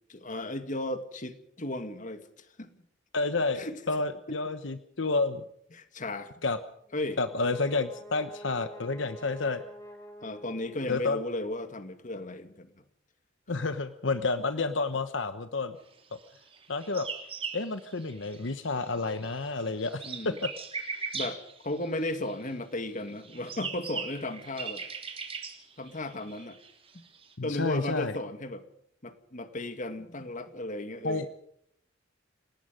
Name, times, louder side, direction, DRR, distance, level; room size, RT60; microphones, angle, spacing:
voice 1, 0.1-2.3 2.6-2.7 3.5-3.8 4.3-4.4 5.7-6.4 6.9-7.2 10.2-12.7 20.0-20.4 21.1-24.8 25.8-26.6 27.4-28.6 29.0-31.3, left 1 dB, 40° left, 9 dB, 2.2 m, -35 dB
voice 2, 3.1-5.4 6.4-6.6 7.2-9.6 10.9-11.2 13.5-15.8 16.7-17.1 17.5-20.5 27.4-28.2 31.0-31.3, left 3 dB, 70° left, 10 dB, 1.1 m, -30 dB
Brass instrument, 6.8-11.2, equal, 15° left, 5.4 m, -48 dB
sound 1, 16.5-18.7 18.9-22.5 23.1-27.3, right 5 dB, 30° right, 3.6 m, -39 dB
29.0 x 18.0 x 5.2 m, 0.70 s
head